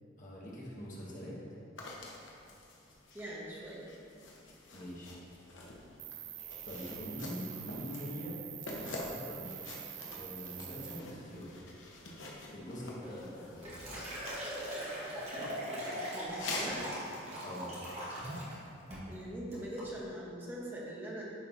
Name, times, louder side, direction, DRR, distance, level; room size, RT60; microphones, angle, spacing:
voice 1, 0.2-1.4 4.7-5.2 6.6-8.4 8.8-9.5 10.1-11.6 12.5-13.7 17.4-17.7, equal, 45° left, -6 dB, 1.4 m, -44 dB
sound 1, 1.8-15.2 16.2-16.8, left 2 dB, 85° left, 0.9 m, -46 dB
voice 2, 3.1-3.9 16.1-17.0 19.1-21.2, right 1 dB, 10° right, -5 dB, 1.0 m, -42 dB
Cricket, 6.0-11.0, right 13 dB, 85° right, 0.4 m, -46 dB
Liquid, 13.0-18.6 18.9-19.2 19.5-19.9, equal, 35° right, 1.5 m, -40 dB
9.4 x 4.4 x 2.7 m, 2.6 s
head